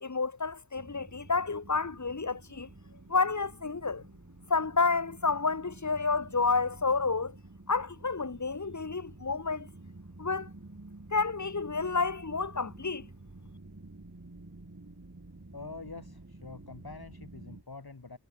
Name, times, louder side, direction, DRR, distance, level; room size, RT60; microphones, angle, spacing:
voice 1, 0.0-2.7 3.1-4.0 4.5-7.3 7.7-9.7 10.2-10.5 11.1-13.0, left 4 dB, 50° left, 1.6 m, -30 dB
sound 1, 0.8-17.6, right 2 dB, 45° right, 7.6 m, -50 dB
voice 2, 15.5-18.2, left 3 dB, 75° left, 5.3 m, -45 dB
wide cardioid pair, 55°, 37 cm